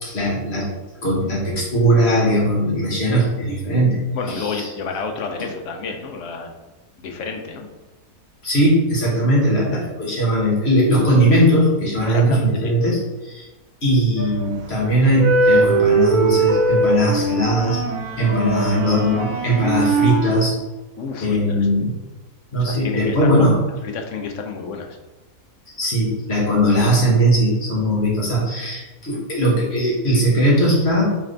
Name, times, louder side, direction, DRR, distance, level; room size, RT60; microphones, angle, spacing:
voice 1, 0.0-0.7 1.0-4.0 4.3-4.7 8.4-13.5 13.8-17.8 18.2-20.6 21.2-21.9 22.5-23.6 25.7-31.2, equal, 45° left, -5 dB, 1.3 m, -19 dB
voice 2, 4.1-6.5 7.0-7.7 12.1-12.7 21.0-21.6 22.6-23.5 23.8-25.0, left 4 dB, 65° left, 3 dB, 0.8 m, -30 dB
sound 1, 14.2-14.6 15.1-20.4, right 3 dB, 75° right, 1.2 m, -20 dB
3.2 x 3.2 x 3.8 m, 1.1 s
omnidirectional pair, 1.6 m